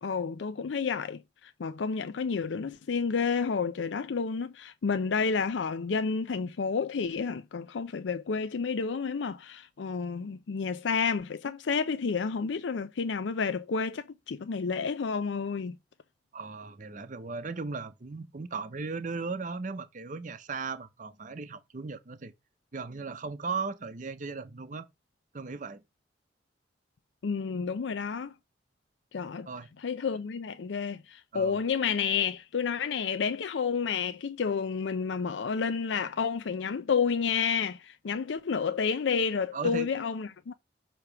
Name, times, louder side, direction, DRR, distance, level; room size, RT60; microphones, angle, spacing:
voice 1, 0.0-15.8 27.2-28.3 29.1-29.5 29.8-40.5, left 5 dB, 85° left, 0.5 m, -30 dB
voice 2, 16.3-22.3 22.7-24.9 25.3-25.8 29.5-29.7 31.3-31.6 39.5-39.9, right 4 dB, 45° right, 0.6 m, -37 dB
6.8 x 3.0 x 5.8 m
head